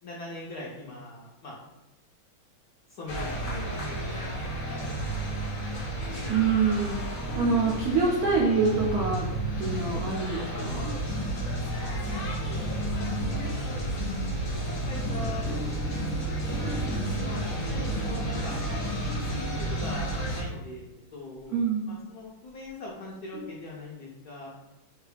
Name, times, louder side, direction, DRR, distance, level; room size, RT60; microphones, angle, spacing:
voice 1, 0.0-1.6 3.0-4.4 9.7-9.9 11.8-12.9 13.6-14.0 14.5-16.7 17.0-18.6 18.9-21.6 21.9-24.5, left 2 dB, 75° left, -4 dB, 0.9 m, -42 dB
sound 1, 3.1-20.4, right 1 dB, 50° left, 0.8 m, -31 dB
voice 2, 6.3-9.3 9.6-10.9 21.5-22.0, right 5 dB, 80° right, -3 dB, 0.8 m, -26 dB
sound 2, 7.2-8.1 8.7-8.8 11.4-11.5 13.1-13.8 14.8-17.2 17.8-18.0 18.4-19.6 21.1-21.4 21.8-22.2 22.7-22.8 23.1-23.7, left 2 dB, ahead, 0.5 m, -42 dB
3.2 x 2.3 x 3.2 m, 1.0 s
omnidirectional pair, 2.2 m